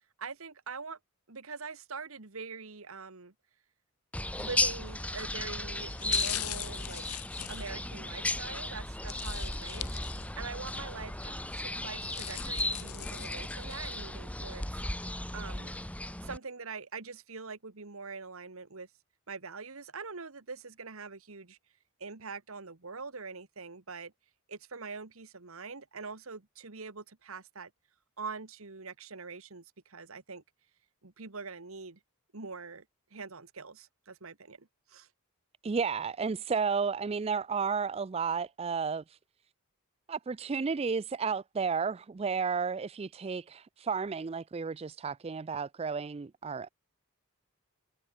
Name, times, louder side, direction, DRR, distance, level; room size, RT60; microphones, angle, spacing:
voice 1, 0.2-1.0 1.3-3.3 4.4-7.1 7.5-14.7 15.3-15.8 16.2-18.9 19.3-21.6 22.0-24.1 24.5-27.7 28.2-30.4 31.0-32.0 32.3-32.8 33.1-35.1, right 4 dB, 70° right, 1.5 m, -44 dB
sound 1, 4.1-16.4, left 1 dB, 5° left, 1.6 m, -35 dB
sound 2, 4.9-5.2 5.8-8.4 9.1-10.5 10.9-11.0 11.8-14.0 14.5-14.6, left 14 dB, 90° left, 1.2 m, -41 dB
voice 2, 35.6-39.2 40.1-46.7, right 5 dB, 25° right, 0.3 m, -32 dB
head